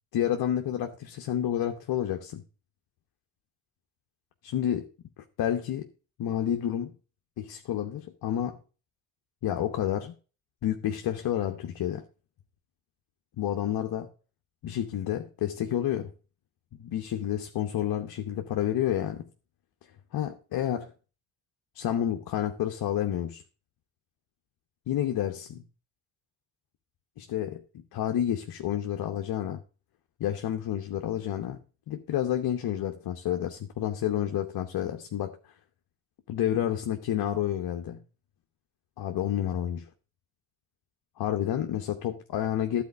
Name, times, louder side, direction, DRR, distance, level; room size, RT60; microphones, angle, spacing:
voice 1, 0.1-2.4 4.4-4.9 5.2-5.9 6.2-6.9 7.4-8.6 9.4-10.1 10.6-12.0 13.4-14.1 14.6-16.1 16.8-19.3 20.1-20.9 21.7-23.4 24.9-25.6 27.2-29.6 30.2-31.6 31.9-35.4 36.3-38.0 39.0-39.8 41.2-42.8, left 11 dB, 60° left, 1.0 m, -29 dB
11.5 x 4.4 x 6.7 m
hypercardioid pair, 45°, 41 cm